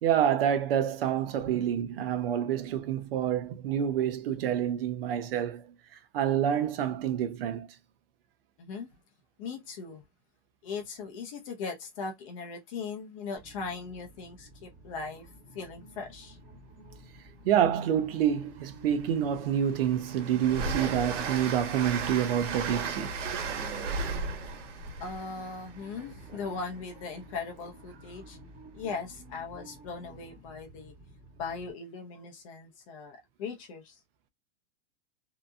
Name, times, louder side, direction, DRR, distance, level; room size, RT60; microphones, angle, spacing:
voice 1, 0.0-5.7 6.1-7.7 17.5-23.4, right 9 dB, 55° right, 0.6 m, -28 dB
voice 2, 8.6-8.9 9.4-10.0 10.6-15.3 15.5-16.4 25.0-28.4 28.7-30.9 31.4-34.0, left 4 dB, 30° left, 0.5 m, -39 dB
sound 1, 13.4-31.7, right 1 dB, 15° right, 1.4 m, -52 dB
Train, 18.4-18.5 18.9-26.7, right 4 dB, 85° right, 1.2 m, -35 dB
2.8 x 2.6 x 2.3 m
supercardioid pair, 175°, 35 cm